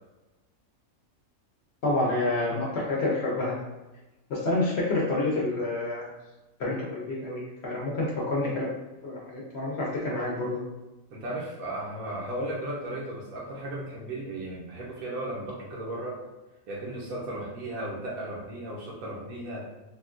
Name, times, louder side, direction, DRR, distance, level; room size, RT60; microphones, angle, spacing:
voice 1, 1.8-3.5 4.3-6.1 6.6-8.7 9.0-10.6, left 2 dB, 60° left, -4 dB, 0.7 m, -28 dB
voice 2, 11.1-16.2 16.7-19.7, right 1 dB, 75° right, -4 dB, 1.1 m, -35 dB
3.5 x 2.2 x 2.4 m, 1.1 s
omnidirectional pair, 1.5 m